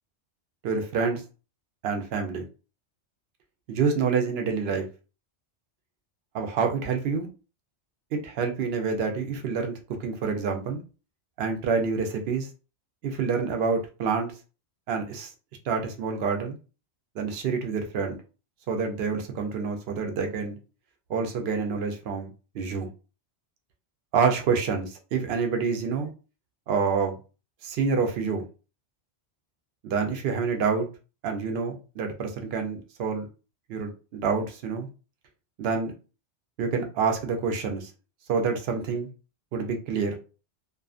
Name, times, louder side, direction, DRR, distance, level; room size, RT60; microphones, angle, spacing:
voice 1, 0.6-1.2 1.8-2.4 3.7-4.9 6.3-7.3 8.1-9.8 10.0-10.8 11.4-12.5 13.0-14.3 14.9-15.3 15.7-16.6 17.2-18.2 18.7-20.6 21.1-22.9 24.1-26.1 26.7-27.2 27.6-28.4 29.8-30.9 31.2-33.2 33.7-34.9 35.6-35.9 36.6-37.9 38.3-39.1 39.5-40.2, right 5 dB, 65° right, 4 dB, 0.8 m, -27 dB
2.4 x 2.3 x 2.4 m, 0.33 s
omnidirectional pair, 1.2 m